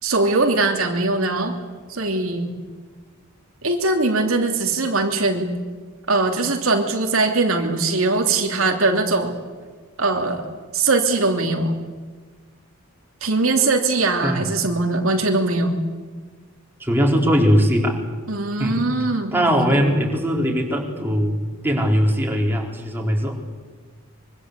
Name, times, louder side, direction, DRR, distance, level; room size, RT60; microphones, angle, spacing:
voice 1, 0.0-1.6 1.9-2.5 3.6-5.5 6.1-9.4 10.0-10.5 10.7-11.7 13.2-15.8 18.3-19.8, right 3 dB, 70° right, 2 dB, 2.9 m, -21 dB
voice 2, 16.8-18.0 18.6-18.8 19.3-21.4 21.6-23.3, equal, 10° right, -1 dB, 4.3 m, -20 dB
25.0 x 24.5 x 8.3 m, 1.5 s
head